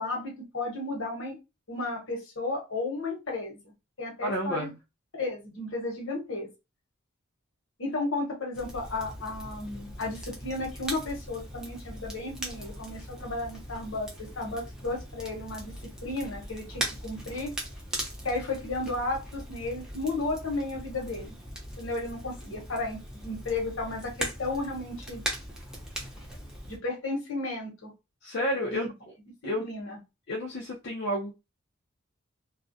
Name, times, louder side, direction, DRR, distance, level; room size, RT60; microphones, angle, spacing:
voice 1, 0.0-1.4 1.7-3.6 4.0-4.7 5.1-6.5 7.8-15.7 16.0-17.5 18.2-21.4 21.8-25.2 26.7-27.9 28.7-28.9 29.6-30.0, left 2 dB, 70° left, 1.0 m, -33 dB
voice 2, 4.2-4.7 28.2-28.9 29.4-29.7 30.3-31.3, equal, 50° left, 0.5 m, -30 dB
Crackle, 8.5-26.8, right 1 dB, 5° right, 0.5 m, -40 dB
2.3 x 2.1 x 2.6 m
head